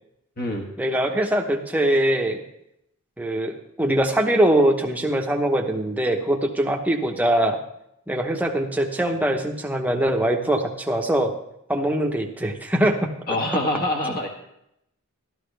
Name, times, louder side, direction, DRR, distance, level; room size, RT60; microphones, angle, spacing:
voice 1, 0.8-2.4 3.2-7.6 8.1-11.3 11.7-13.0 14.1-14.3, right 1 dB, 5° right, 2 dB, 1.0 m, -22 dB
voice 2, 13.3-14.3, left 1 dB, 45° left, 1 dB, 1.5 m, -25 dB
12.5 x 12.5 x 3.3 m, 0.79 s
head